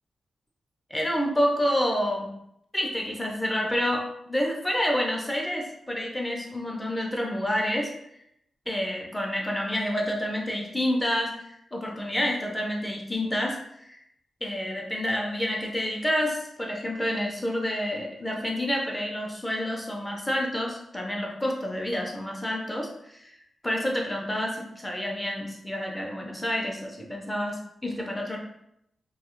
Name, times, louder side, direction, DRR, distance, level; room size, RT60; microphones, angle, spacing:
voice 1, 0.9-2.3 2.7-7.9 8.7-14.0 14.4-23.4 23.6-28.4, left 1 dB, 15° left, 0 dB, 0.5 m, -28 dB
2.3 x 2.0 x 2.9 m, 0.77 s
cardioid pair, 95°, 0 cm